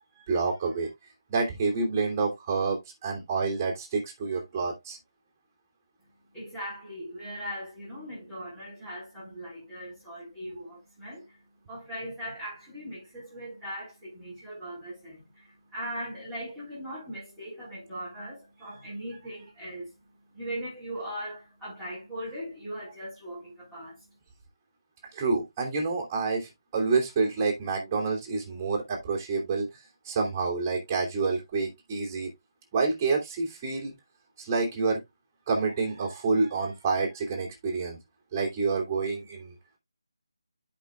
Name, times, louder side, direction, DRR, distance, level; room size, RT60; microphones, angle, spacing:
voice 1, 0.3-0.9 1.3-5.0 25.1-32.3 32.7-33.9 34.4-35.0 35.5-38.0 38.3-39.5, right 4 dB, 20° right, 2.9 m, -28 dB
voice 2, 6.3-11.4 11.7-19.9 20.3-24.0, equal, ahead, 3.8 m, -39 dB
14.0 x 5.3 x 2.4 m
figure-of-eight pair, 160°, 3 cm